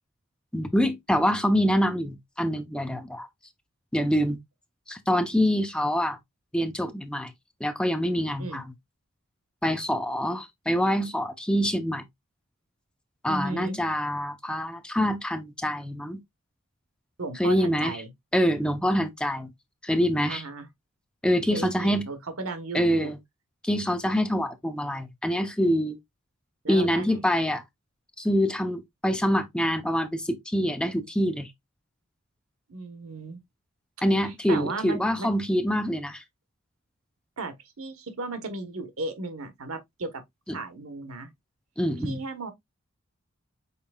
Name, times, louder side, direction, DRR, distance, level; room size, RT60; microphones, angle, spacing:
voice 1, 0.5-3.3 3.9-4.4 4.9-6.2 6.5-7.3 7.6-8.7 9.6-12.0 13.2-16.2 17.4-17.9 18.3-19.5 19.8-20.4 21.2-22.1 22.7-23.2 23.6-26.0 26.7-27.6 28.2-31.5 34.0-36.2 40.5-40.6 41.8-42.2, equal, 5° left, 0.7 m, -25 dB
voice 2, 13.2-13.8 17.2-18.1 20.3-20.7 21.5-23.1 26.6-27.2 32.7-33.4 34.2-35.3 37.4-40.2 40.5-41.3 42.0-42.5, right 2 dB, 90° right, 1.0 m, -35 dB
5.6 x 4.2 x 2.3 m
head